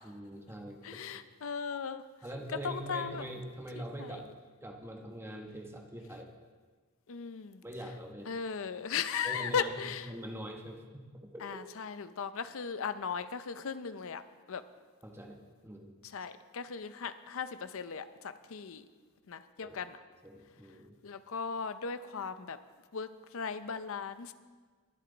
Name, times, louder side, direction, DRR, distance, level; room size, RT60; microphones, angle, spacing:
voice 1, 0.0-1.0 2.2-4.3 4.6-6.3 7.6-8.3 9.2-11.6 15.0-15.4 15.6-15.9 19.6-19.8 20.2-20.9, right 1 dB, 10° right, 1 dB, 1.2 m, -43 dB
voice 2, 0.8-2.0 2.5-3.3 3.8-4.3 7.1-7.6 8.3-10.1 11.4-14.2 14.5-14.6 16.0-18.9 19.3-20.0 21.0-22.6 22.9-24.3, left 6 dB, 65° left, 12 dB, 0.6 m, -37 dB
21.5 x 7.7 x 4.0 m, 1.4 s
head